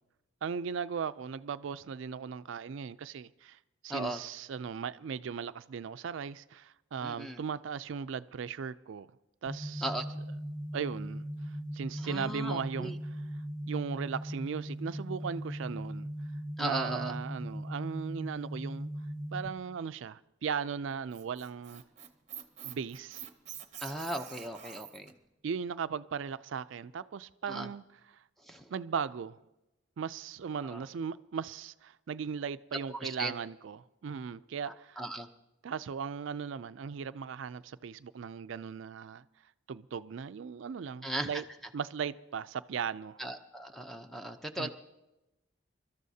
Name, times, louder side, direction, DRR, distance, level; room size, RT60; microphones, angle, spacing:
voice 1, 0.4-9.1 9.4-9.9 10.7-13.3 13.7-16.1 16.6-18.9 19.3-21.8 22.6-23.3 25.4-28.2 28.7-29.4 30.0-35.0 35.6-39.2 39.7-41.4 41.7-43.2 44.6-44.7, right 6 dB, 75° right, 0.4 m, -38 dB
voice 2, 7.0-7.4 9.8-10.0 12.0-12.9 16.6-17.1 23.8-25.1 27.5-27.7 28.5-28.6 30.7-30.8 33.0-33.3 34.6-35.3 41.0-41.3 43.2-44.7, right 1 dB, ahead, 0.6 m, -37 dB
sound 1, 9.5-19.5, equal, 35° left, 1.9 m, -39 dB
Squeak, 20.9-25.1, right 10 dB, 35° right, 0.8 m, -46 dB
27.5 x 13.0 x 2.8 m
head